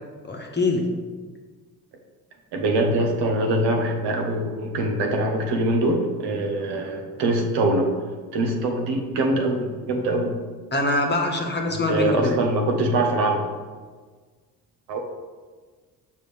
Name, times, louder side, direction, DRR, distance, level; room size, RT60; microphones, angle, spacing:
voice 1, 0.3-0.8 10.7-12.3, left 2 dB, 25° left, 2 dB, 1.3 m, -23 dB
voice 2, 2.5-7.9 8.3-10.4 11.7-13.5 14.9-15.0, right 1 dB, 65° right, 2 dB, 1.2 m, -23 dB
6.7 x 5.2 x 3.4 m, 1.4 s
hypercardioid pair, 60°, 44 cm